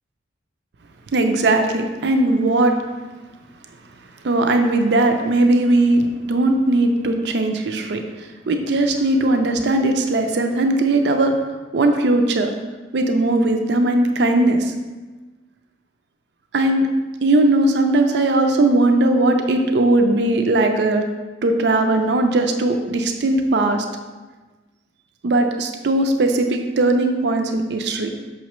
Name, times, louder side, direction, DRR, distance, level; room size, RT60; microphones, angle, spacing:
voice 1, 1.1-2.8 4.2-11.3 11.7-12.5 12.9-14.7 16.5-16.9 17.2-21.1 21.4-23.9 25.2-28.1, right 2 dB, 60° right, 5 dB, 0.5 m, -18 dB
6.0 x 5.6 x 3.0 m, 1.2 s
head